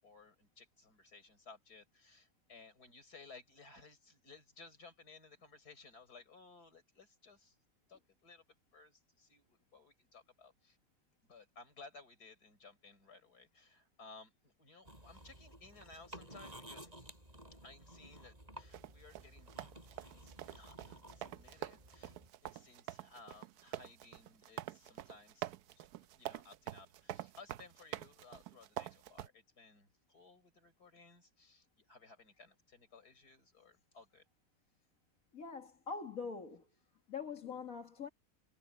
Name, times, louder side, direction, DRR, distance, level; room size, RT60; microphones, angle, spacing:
voice 1, 0.0-7.6 7.9-8.4 8.7-10.8 11.3-16.9 17.6-22.1 22.4-34.3, left 3 dB, 75° left, 5.6 m, -59 dB
sound 1, 14.8-22.3, right 1 dB, 25° right, 7.6 m, -55 dB
sound 2, 18.7-29.3, right 13 dB, 75° right, 1.1 m, -46 dB
voice 2, 35.3-36.6 37.1-38.1, left 5 dB, 60° left, 2.4 m, -43 dB
omnidirectional pair, 1.7 m